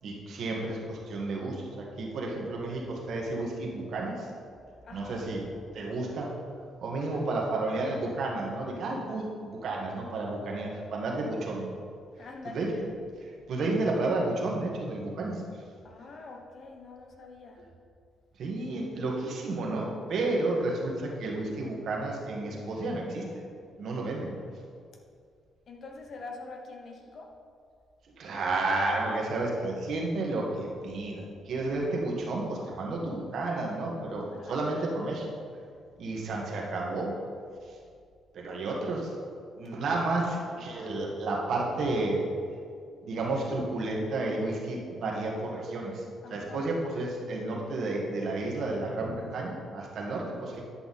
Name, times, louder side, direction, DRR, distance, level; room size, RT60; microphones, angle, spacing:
voice 1, 0.0-4.3 4.9-5.4 5.7-6.3 6.8-11.7 12.5-12.7 13.2-15.4 18.4-23.3 23.8-24.3 28.2-35.3 36.0-37.1 38.3-39.1 39.6-42.2 43.0-46.0 46.3-50.6, right 2 dB, 65° right, -1 dB, 1.7 m, -31 dB
voice 2, 4.8-5.2 6.9-7.4 11.2-11.5 12.2-12.6 15.8-17.6 25.7-27.3 34.3-34.6 40.6-40.7 46.2-46.7, left 3 dB, 55° left, 2 dB, 1.2 m, -45 dB
10.5 x 5.8 x 4.2 m, 2.2 s
cardioid pair, 90°, 0 cm